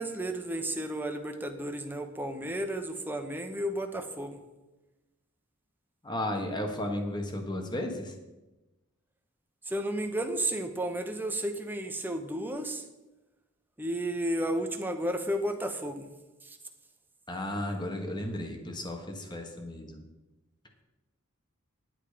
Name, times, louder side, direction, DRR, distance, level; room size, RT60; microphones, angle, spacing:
voice 1, 0.0-4.4 9.7-12.8 13.8-16.1 16.4-16.6, right 1 dB, 10° right, 5 dB, 0.9 m, -33 dB
voice 2, 6.0-8.1 17.3-20.0, left 1 dB, 20° left, 3 dB, 1.4 m, -34 dB
10.0 x 9.0 x 5.1 m, 1.1 s
head